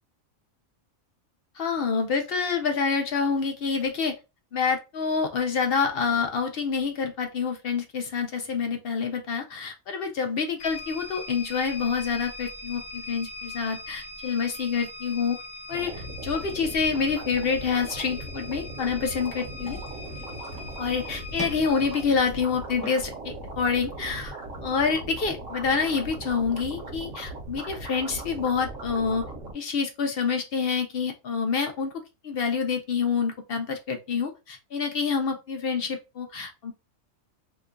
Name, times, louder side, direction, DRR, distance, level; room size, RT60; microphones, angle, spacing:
voice 1, 1.6-4.2 4.5-15.4 15.7-19.8 20.8-24.3 24.6-29.2 29.5-31.9 32.2-36.7, left 5 dB, 65° left, 5 dB, 0.6 m, -27 dB
sound 1, 10.6-22.0, left 3 dB, 50° left, 0.9 m, -41 dB
sound 2, 15.7-29.5, right 2 dB, 70° right, 1.3 m, -39 dB
sound 3, 19.6-27.6, left 1 dB, 10° left, 0.3 m, -46 dB
2.9 x 2.2 x 3.6 m, 0.27 s
omnidirectional pair, 1.4 m